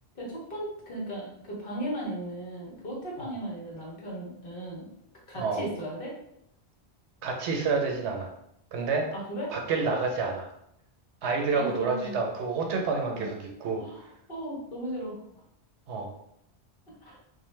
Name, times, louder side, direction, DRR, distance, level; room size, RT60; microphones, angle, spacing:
voice 1, 0.1-4.9 5.3-6.1 9.1-9.5 11.5-12.2 13.1-13.3 13.8-15.2 17.1-17.2, right 1 dB, 55° left, -4 dB, 1.0 m, -36 dB
voice 2, 7.2-8.3 8.7-9.1 9.5-10.5 11.2-13.8 15.9-16.1, right 4 dB, 85° right, 2 dB, 0.9 m, -28 dB
2.5 x 2.1 x 3.1 m, 0.76 s
omnidirectional pair, 1.1 m